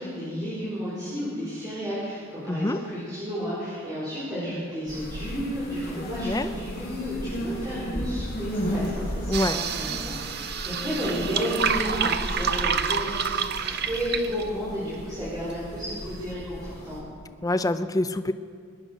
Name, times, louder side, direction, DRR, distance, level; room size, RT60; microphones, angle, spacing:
voice 1, 0.0-17.0, equal, 20° right, -11 dB, 5.1 m, -32 dB
voice 2, 2.5-2.8 5.9-6.5 9.3-9.6 17.4-18.3, left 1 dB, 15° left, 9 dB, 0.5 m, -26 dB
sound 1, 4.9-17.0, equal, 55° left, 3.8 m, -35 dB
sound 2, 9.3-14.5, right 7 dB, 55° right, 0.7 m, -28 dB
21.5 x 9.9 x 6.5 m, 2.1 s
head